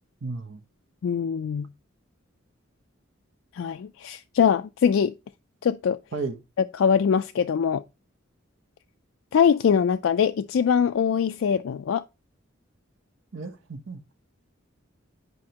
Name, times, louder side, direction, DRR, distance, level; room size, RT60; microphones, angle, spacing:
voice 1, 0.2-0.6 6.1-6.4 13.3-14.0, right 3 dB, 65° right, 0.8 m, -33 dB
voice 2, 1.0-1.7 3.5-5.1 5.6-6.0 6.7-7.8 9.3-12.0, left 7 dB, 70° left, 0.3 m, -22 dB
9.5 x 5.2 x 2.8 m
head